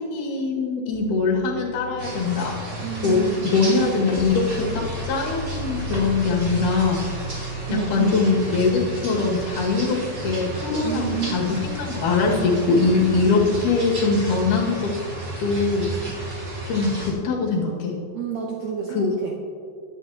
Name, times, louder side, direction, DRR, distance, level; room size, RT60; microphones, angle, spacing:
voice 1, 0.0-2.5 3.0-7.0 7.7-10.0 10.2-14.9 15.4-15.9 16.7-18.0 18.9-19.1, left 4 dB, 60° left, -2 dB, 3.2 m, -22 dB
sound 1, 0.9-12.7 13.6-13.9, left 1 dB, 80° left, 3.2 m, -39 dB
sound 2, 2.0-17.1, right 2 dB, 35° right, 2.3 m, -33 dB
voice 2, 2.8-3.4 7.7-8.2 10.8-11.6 18.1-19.4, right 8 dB, 85° right, 0 dB, 1.5 m, -29 dB
20.5 x 9.5 x 2.9 m, 2.4 s
omnidirectional pair, 4.4 m